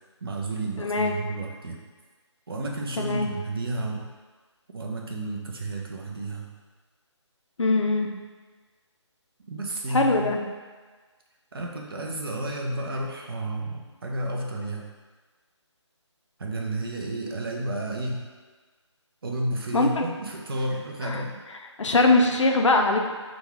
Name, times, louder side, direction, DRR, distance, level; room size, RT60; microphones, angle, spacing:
voice 1, 0.2-1.8 2.5-4.1 4.7-6.5 9.5-10.3 11.5-14.9 16.4-18.3 19.2-21.3, right 1 dB, 50° right, -1 dB, 0.7 m, -31 dB
voice 2, 0.8-1.2 3.0-3.3 7.6-8.1 9.9-10.4 19.7-20.1 21.0-21.3 21.8-23.1, left 2 dB, 75° left, 3 dB, 0.6 m, -22 dB
3.9 x 2.4 x 4.6 m, 1.4 s
figure-of-eight pair, 165°, 16 cm